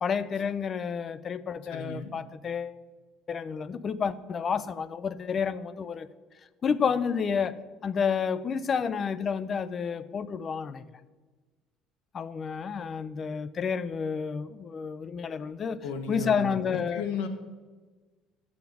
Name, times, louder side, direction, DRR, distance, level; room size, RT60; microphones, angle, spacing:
voice 1, 0.0-2.8 3.3-6.1 6.6-7.6 7.8-10.8 12.1-17.0, left 6 dB, 30° left, 0.4 m, -30 dB
voice 2, 1.7-2.1 15.8-17.3, left 4 dB, 90° left, 1.1 m, -34 dB
12.0 x 7.1 x 4.7 m
cardioid pair, 145°, 0 cm